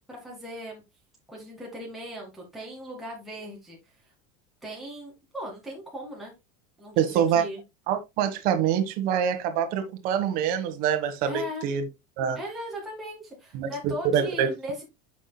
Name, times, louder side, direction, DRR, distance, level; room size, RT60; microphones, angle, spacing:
voice 1, 0.1-0.8 1.3-3.8 4.6-6.3 6.8-7.6 11.3-11.7 12.4-14.8, equal, ahead, 1.9 m, -38 dB
voice 2, 7.0-7.4 7.9-11.8 12.2-12.4 13.5-14.5, right 8 dB, 50° right, 1.4 m, -25 dB
9.2 x 6.1 x 2.2 m
supercardioid pair, 160°, 20 cm